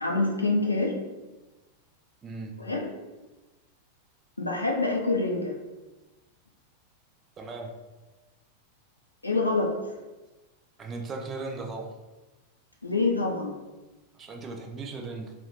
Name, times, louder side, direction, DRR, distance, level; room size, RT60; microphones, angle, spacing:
voice 1, 0.0-1.0 2.6-2.9 4.4-5.5 9.2-9.8 12.8-13.6, left 3 dB, 85° left, 0 dB, 0.5 m, -26 dB
voice 2, 2.2-2.5 7.4-7.7 10.8-11.9 14.2-15.3, right 3 dB, 25° right, 2 dB, 0.5 m, -37 dB
3.0 x 2.4 x 3.1 m, 1.2 s
figure-of-eight pair, 90°, 0 cm